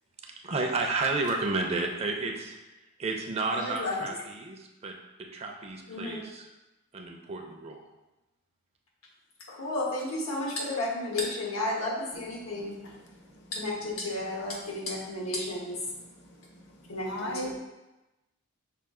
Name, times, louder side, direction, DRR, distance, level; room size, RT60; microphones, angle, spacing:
voice 1, 0.2-2.6 3.0-4.9 5.2-6.5 6.9-7.8, right 3 dB, 30° right, 2 dB, 0.4 m, -31 dB
voice 2, 3.5-4.1 5.9-6.2 9.5-12.8 13.5-15.8 16.9-17.5, left 2 dB, 90° left, -2 dB, 1.1 m, -32 dB
voice 3, 16.8-17.5, left 1 dB, 55° left, 1 dB, 0.7 m, -37 dB
5.7 x 2.3 x 3.6 m, 1.0 s
head